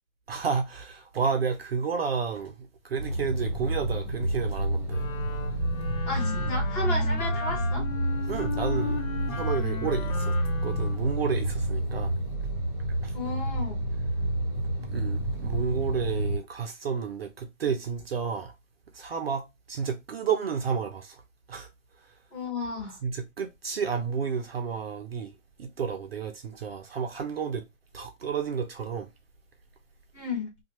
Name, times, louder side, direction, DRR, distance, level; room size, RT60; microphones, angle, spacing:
voice 1, 0.3-2.6 2.8-5.1 6.4-6.5 8.3-9.0 9.3-10.4 10.6-12.1 13.0-13.2 14.6-18.5 18.9-21.2 21.5-21.7 23.0-27.6 27.9-29.1, right 6 dB, 45° right, 0.5 m, -31 dB
sound 1, 3.0-16.4, right 1 dB, 10° right, 0.7 m, -29 dB
Wind instrument woodwind instrument, 4.9-11.6, left 6 dB, 85° left, 0.9 m, -37 dB
voice 2, 6.1-7.8 13.1-13.8 22.3-23.0 30.1-30.5, left 3 dB, 15° left, 0.9 m, -33 dB
2.7 x 2.3 x 2.8 m
figure-of-eight pair, 135°, 41 cm